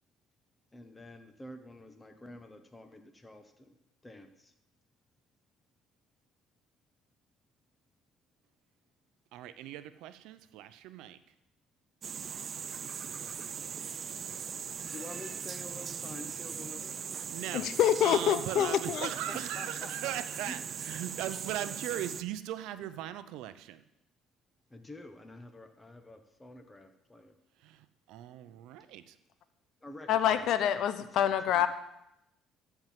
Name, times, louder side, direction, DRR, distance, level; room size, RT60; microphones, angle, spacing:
voice 1, 0.7-3.7 4.0-4.5 14.9-16.9 18.5-18.7 19.3-19.9 20.4-20.6 24.7-27.3 29.8-30.5 31.0-31.6, left 1 dB, 15° left, 6 dB, 1.3 m, -48 dB
voice 2, 9.3-11.2 17.3-17.7 18.0-23.8 27.6-29.2, right 12 dB, 80° right, 12 dB, 0.7 m, -39 dB
sound 1, 12.0-22.2, right 7 dB, 40° right, 0.4 m, -40 dB
voice 3, 17.5-19.1 30.1-31.7, left 10 dB, 65° left, 11 dB, 0.7 m, -26 dB
13.0 x 4.7 x 7.5 m, 0.85 s
cardioid pair, 100°, 0 cm